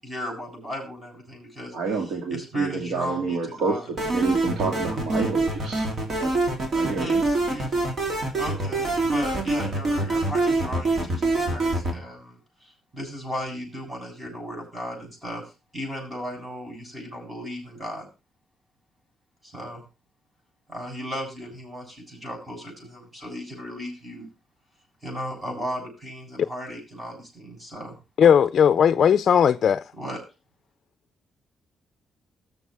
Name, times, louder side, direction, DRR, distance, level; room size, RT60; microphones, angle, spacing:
voice 1, 0.0-1.7 2.3-3.9 6.9-7.8 8.4-15.4 15.7-18.1 19.4-19.8 20.7-24.3 25.0-28.0 30.0-30.2, equal, 15° right, 7.9 m, -36 dB
voice 2, 1.7-3.8 4.1-5.9 6.2-6.3 6.7-7.2, right 4 dB, 85° right, 2.4 m, -28 dB
sound 1, 4.0-12.0, right 2 dB, 45° right, 3.4 m, -25 dB
voice 3, 28.2-29.8, left 8 dB, 55° left, 0.5 m, -17 dB
20.0 x 7.1 x 3.4 m
cardioid pair, 135°, 0 cm